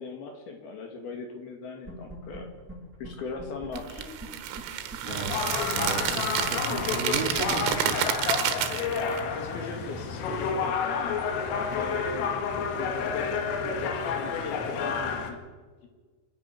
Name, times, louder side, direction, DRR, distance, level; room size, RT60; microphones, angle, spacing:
voice 1, 0.0-2.5 3.0-4.1 9.3-11.2 11.7-15.4, left 4 dB, 60° left, 4 dB, 3.5 m, -39 dB
sound 1, 1.9-2.4 2.7-2.8 3.0-3.1 3.4-5.0 5.3-5.4 5.6-8.6, right 1 dB, ahead, 5.0 m, -42 dB
sound 2, 3.8-9.2, right 10 dB, 85° right, 4.0 m, -30 dB
voice 2, 5.0-8.0, right 6 dB, 65° right, 5 dB, 3.6 m, -36 dB
sound 3, 5.1-15.3, left 6 dB, 90° left, 4.4 m, -30 dB
27.0 x 10.5 x 9.8 m, 1.4 s
omnidirectional pair, 5.7 m